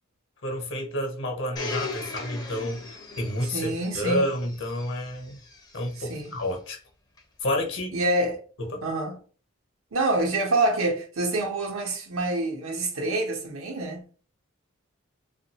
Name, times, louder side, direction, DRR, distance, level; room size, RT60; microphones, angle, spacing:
voice 1, 0.4-5.4 5.7-6.8 7.4-8.0 8.6-8.8, left 1 dB, 60° left, 0.9 m, -30 dB
Domestic sounds home sounds, 1.6-6.4 7.2-7.3, left 3 dB, 20° left, 0.5 m, -39 dB
voice 2, 3.5-4.3 6.0-6.3 7.9-8.4 8.8-9.2 9.9-14.1, right 2 dB, 90° right, 0.9 m, -26 dB
3.0 x 2.5 x 2.8 m
head